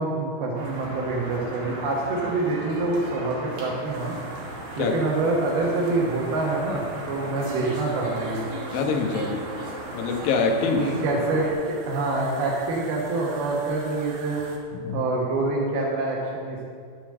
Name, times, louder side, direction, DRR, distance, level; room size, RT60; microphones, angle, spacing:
voice 1, 0.0-4.1 4.8-8.5 10.8-14.4 14.9-16.6, right 2 dB, 80° right, -2 dB, 3.2 m, -26 dB
sound 1, 0.5-11.5, right 2 dB, 40° right, 2.3 m, -36 dB
sound 2, 3.9-14.6, right 4 dB, 55° right, 1.9 m, -45 dB
voice 2, 8.7-9.5 9.9-10.8 14.7-15.0, left 4 dB, 70° left, 2 dB, 2.9 m, -24 dB
11.5 x 7.1 x 7.4 m, 2.2 s
omnidirectional pair, 4.4 m